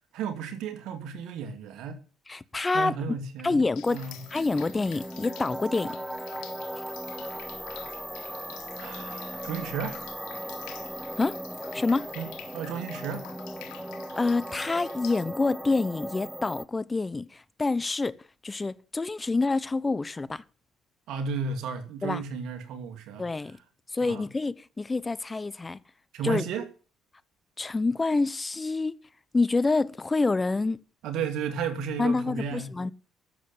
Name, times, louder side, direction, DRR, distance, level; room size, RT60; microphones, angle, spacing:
voice 1, 0.1-2.0 2.7-4.2 8.8-10.0 12.1-13.3 21.1-23.2 24.0-24.2 26.1-26.7 31.0-32.7, right 6 dB, 75° right, 2.5 m, -33 dB
voice 2, 2.3-2.9 3.4-4.0 4.3-6.0 11.2-11.4 11.7-12.1 14.2-18.2 18.4-20.4 22.0-22.2 23.2-23.6 23.9-25.8 26.2-26.4 27.6-29.0 29.3-30.8 32.0-32.9, left 3 dB, 25° left, 0.9 m, -27 dB
Drip, 3.8-15.2, left 12 dB, 80° left, 1.5 m, -48 dB
sound 1, 3.8-16.6, equal, 5° right, 0.9 m, -38 dB
12.5 x 7.7 x 8.9 m
supercardioid pair, 65°, 0 cm